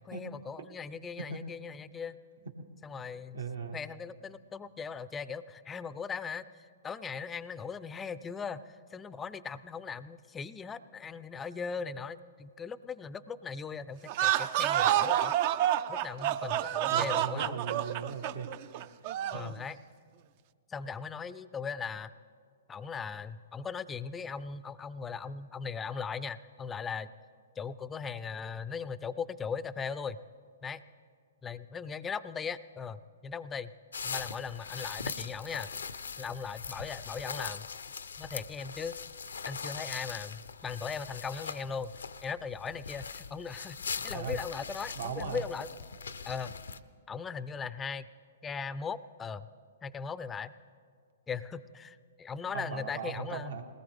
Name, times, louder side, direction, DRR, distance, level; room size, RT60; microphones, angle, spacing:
voice 1, 0.0-2.2 2.8-3.4 3.7-15.4 15.9-17.6 19.3-19.8 20.7-22.1 22.7-27.1 27.6-30.2 30.6-30.8 31.4-33.7 34.0-35.7 36.2-37.7 38.2-39.0 39.5-41.9 42.2-45.7 46.3-46.5 47.1-48.1 48.4-49.5 49.8-50.5 51.3-53.6, left 6 dB, 15° left, 16 dB, 0.4 m, -39 dB
voice 2, 3.3-3.8 16.9-18.6 19.0-19.1 19.4-19.6 44.1-44.4 44.9-45.4 52.5-53.6, right 6 dB, 75° right, 4 dB, 1.5 m, -38 dB
sound 1, 14.1-19.5, right 12 dB, 45° right, 0.4 m, -28 dB
sound 2, 33.9-46.8, left 5 dB, 80° left, 0.5 m, -41 dB
21.0 x 18.5 x 3.5 m, 2.1 s
hypercardioid pair, 125°, 0 cm